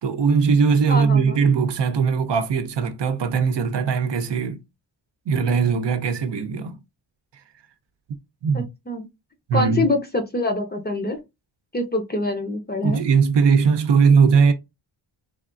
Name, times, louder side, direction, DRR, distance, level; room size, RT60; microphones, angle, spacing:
voice 1, 0.0-4.6 5.3-6.8 8.4-8.7 9.5-9.9 12.8-14.5, right 5 dB, 60° right, 0.7 m, -19 dB
voice 2, 0.9-1.4 8.5-9.1 9.5-11.2 11.7-13.0, left 2 dB, 20° left, 0.7 m, -25 dB
3.4 x 2.3 x 2.5 m
wide cardioid pair, 110°, 48 cm